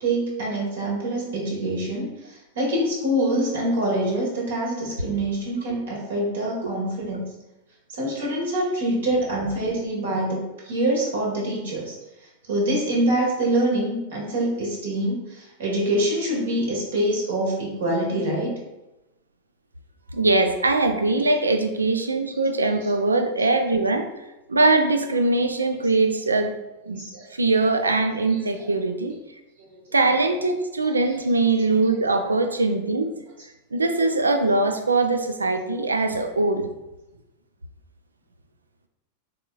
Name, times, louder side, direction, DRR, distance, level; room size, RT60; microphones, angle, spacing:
voice 1, 0.0-7.3 7.9-10.4 10.6-11.9 12.5-18.6 27.0-27.3 28.3-28.6, right 1 dB, 60° right, -3 dB, 1.6 m, -25 dB
voice 2, 20.1-24.1 24.5-26.5 26.9-27.0 27.3-29.2 29.9-33.1 33.7-36.7, right 3 dB, 80° right, 7 dB, 0.4 m, -21 dB
5.8 x 3.5 x 2.4 m, 0.97 s
figure-of-eight pair, 90°, 0 cm